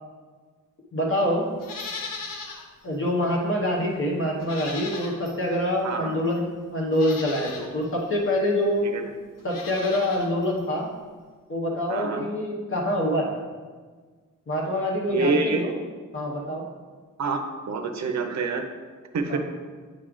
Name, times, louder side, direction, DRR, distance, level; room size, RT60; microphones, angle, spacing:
voice 1, 0.9-1.4 2.8-8.8 9.4-10.9 11.5-13.4 14.5-15.7 16.1-16.6 19.3-19.4, left 1 dB, 40° left, -2 dB, 0.9 m, -25 dB
Livestock farm animals working animals, 1.6-2.7 3.1-3.2 4.4-5.4 6.3-6.4 6.9-7.7 9.4-10.3 10.6-10.7, left 4 dB, 90° left, 0.7 m, -37 dB
voice 2, 5.8-6.2 8.8-9.0 11.9-12.3 15.1-15.6 17.2-17.4 17.7-18.6 19.1-19.4, right 4 dB, 60° right, 5 dB, 0.6 m, -26 dB
8.9 x 3.2 x 3.7 m, 1.5 s
wide cardioid pair, 170°, 32 cm